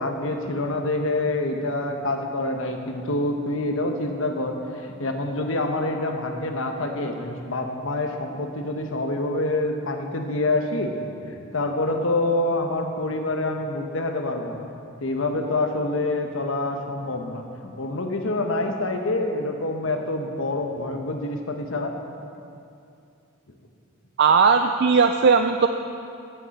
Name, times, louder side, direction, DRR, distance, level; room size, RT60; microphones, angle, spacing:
voice 1, 0.0-10.9 11.2-14.7 15.0-21.9, left 2 dB, 65° left, 4 dB, 1.0 m, -26 dB
voice 2, 24.2-25.7, right 5 dB, 55° right, 6 dB, 0.4 m, -17 dB
13.5 x 9.1 x 4.2 m, 2.6 s
head